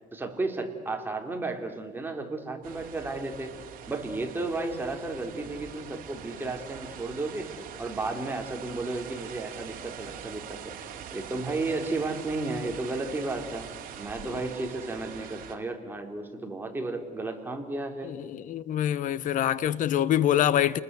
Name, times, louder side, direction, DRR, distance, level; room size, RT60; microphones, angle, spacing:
voice 1, 0.1-3.5 3.9-10.9 11.1-13.7 14.0-18.1, right 2 dB, 15° right, 3.6 m, -33 dB
sound 1, 2.6-15.6, right 9 dB, 60° right, 3.2 m, -43 dB
voice 2, 18.1-20.8, left 11 dB, 55° left, 1.0 m, -25 dB
30.0 x 20.5 x 8.3 m
cardioid pair, 130°, 16 cm